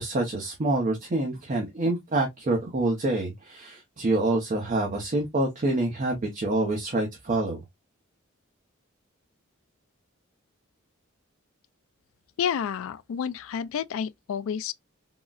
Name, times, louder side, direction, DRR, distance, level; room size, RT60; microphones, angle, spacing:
voice 1, 0.0-7.6, right 2 dB, 40° right, 0.6 m, -26 dB
voice 2, 12.4-14.7, left 8 dB, 70° left, 0.3 m, -30 dB
3.8 x 2.1 x 2.3 m
head